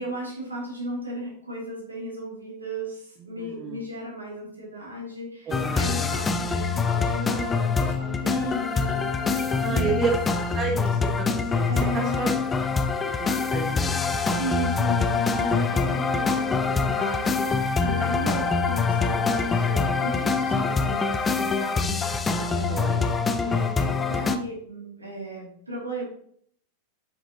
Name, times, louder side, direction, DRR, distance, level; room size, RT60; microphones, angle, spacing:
voice 1, 0.0-10.1 11.6-12.3 14.2-23.1 23.4-26.0, right 1 dB, 80° right, -3 dB, 2.7 m, -35 dB
voice 2, 3.2-3.8 5.5-6.2 8.3-8.6 9.6-10.1 10.5-12.3 13.0-14.2 18.0-18.3 22.7-22.9, right 5 dB, 25° right, 3 dB, 1.0 m, -32 dB
sound 1, 5.5-24.4, left 4 dB, 15° left, 0.5 m, -25 dB
sound 2, 6.0-6.1 6.4-6.6 6.9-7.1 7.4-7.6 7.9-8.1 8.4-8.6 8.9-9.0 9.4-9.5 9.9-10.0 10.4-10.5 10.9-11.0, right 5 dB, 50° right, 1.8 m, -44 dB
8.1 x 6.1 x 2.9 m, 0.63 s
figure-of-eight pair, 90°, 0 cm